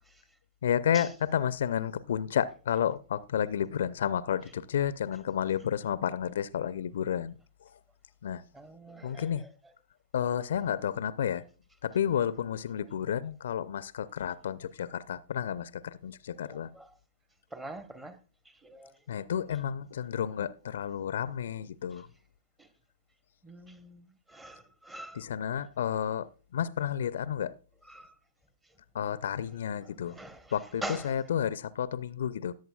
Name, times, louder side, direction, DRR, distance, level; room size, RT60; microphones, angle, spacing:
voice 1, 0.6-7.4 8.2-8.4 9.0-9.4 10.1-11.4 11.8-16.7 19.1-22.1 25.1-26.3 26.5-27.5 28.9-30.1 30.5-32.5, left 9 dB, 60° left, 0.6 m, -31 dB
voice 2, 8.5-9.5 16.4-16.9 17.5-18.2 18.6-18.9 22.6-22.7 23.4-25.2 27.9-28.1 29.8-31.2, right 1 dB, 10° right, 1.1 m, -44 dB
18.0 x 7.9 x 2.3 m
figure-of-eight pair, 115°, 0 cm